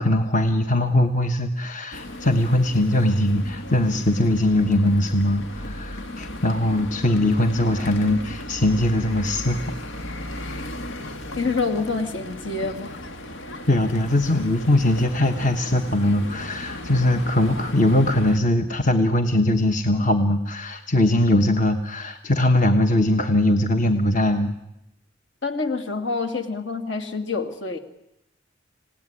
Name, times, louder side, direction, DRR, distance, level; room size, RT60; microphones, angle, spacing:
voice 1, 0.0-9.6 13.7-24.6, left 1 dB, 40° left, 6 dB, 1.2 m, -21 dB
sound 1, 1.9-18.4, left 1 dB, 85° left, 2.0 m, -35 dB
voice 2, 11.4-13.0 25.4-27.8, left 4 dB, 65° left, 5 dB, 2.5 m, -27 dB
27.0 x 17.5 x 9.8 m, 0.89 s
head